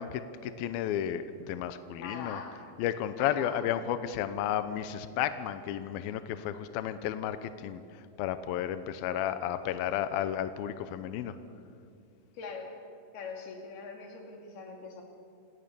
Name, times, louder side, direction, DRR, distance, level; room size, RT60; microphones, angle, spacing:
voice 1, 0.0-11.4, left 10 dB, 80° left, 11 dB, 2.2 m, -33 dB
voice 2, 2.0-2.6 3.2-3.5 12.3-12.8 13.1-15.0, left 5 dB, 60° left, 2 dB, 4.5 m, -42 dB
29.5 x 18.5 x 7.0 m, 2.4 s
omnidirectional pair, 5.2 m